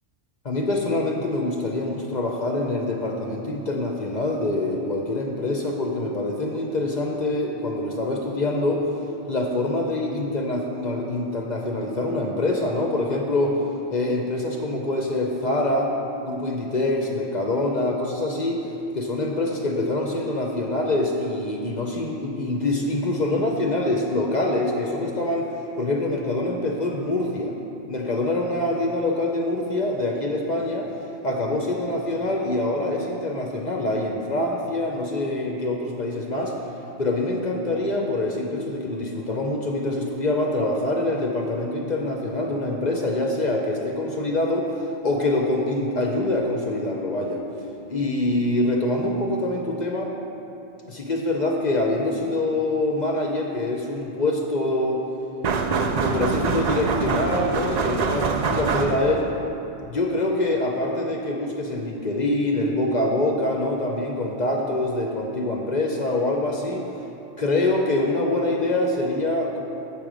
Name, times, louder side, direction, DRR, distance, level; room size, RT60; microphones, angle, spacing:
voice 1, 0.4-8.8 9.3-13.6 13.9-15.9 16.2-18.6 18.9-25.5 25.8-27.5 27.9-30.9 31.2-36.5 37.0-44.7 45.0-47.4 47.9-50.1 50.9-55.0 55.9-59.3 59.8-66.9 67.4-69.6, left 2 dB, 45° left, 1 dB, 0.6 m, -25 dB
sound 1, 55.4-59.3, right 4 dB, 85° right, 0.3 m, -24 dB
7.7 x 5.1 x 6.1 m, 3.0 s
omnidirectional pair, 1.3 m